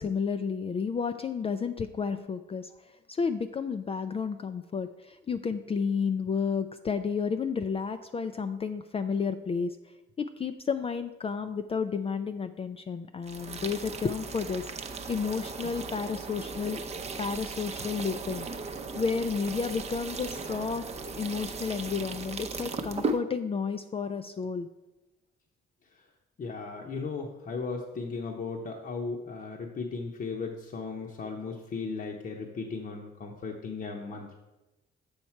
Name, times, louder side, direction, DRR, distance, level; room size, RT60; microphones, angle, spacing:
voice 1, 0.0-2.7 3.1-9.8 10.2-14.7 15.1-16.8 17.2-18.5 19.0-20.8 21.1-24.7, left 5 dB, 30° left, 9 dB, 0.4 m, -31 dB
sound 1, 13.2-23.2, right 3 dB, 35° right, 0.6 m, -37 dB
voice 2, 26.4-34.4, left 4 dB, 45° left, 0 dB, 0.8 m, -36 dB
7.2 x 5.3 x 4.5 m, 1.0 s
cardioid pair, 90°, 20 cm